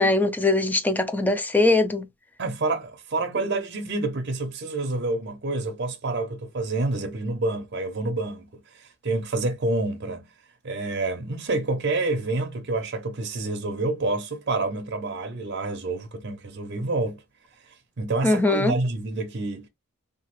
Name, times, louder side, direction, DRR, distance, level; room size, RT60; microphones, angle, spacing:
voice 1, 0.0-2.0 18.2-18.7, left 2 dB, 10° left, 0.3 m, -21 dB
voice 2, 2.4-8.5 8.7-10.3 10.6-17.2 18.0-19.7, right 2 dB, 50° right, 0.6 m, -28 dB
2.8 x 2.4 x 2.9 m
head